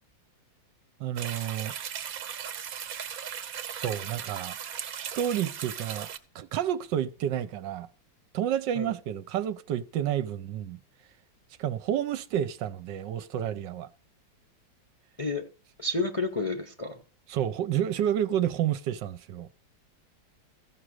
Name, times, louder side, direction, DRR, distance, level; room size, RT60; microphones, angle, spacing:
voice 1, 1.0-1.7 3.8-4.6 5.0-6.1 6.3-7.9 8.3-10.8 11.6-13.9 17.3-19.5, right 10 dB, 75° right, 1.4 m, -30 dB
sound 1, 1.2-6.2, right 8 dB, 55° right, 1.2 m, -37 dB
voice 2, 15.8-17.0, left 2 dB, 20° left, 0.9 m, -30 dB
15.0 x 6.1 x 6.4 m
omnidirectional pair, 2.0 m